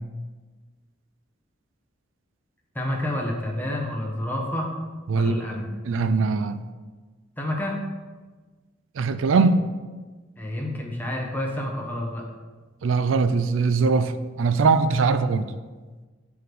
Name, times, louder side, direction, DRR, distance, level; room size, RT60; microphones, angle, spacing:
voice 1, 2.7-4.7 5.1-5.7 7.4-7.8 10.4-12.2, left 1 dB, 10° left, -1 dB, 1.0 m, -29 dB
voice 2, 5.1-6.6 9.0-9.7 12.8-15.5, right 4 dB, 90° right, 12 dB, 0.4 m, -22 dB
6.4 x 4.8 x 5.2 m, 1.3 s
head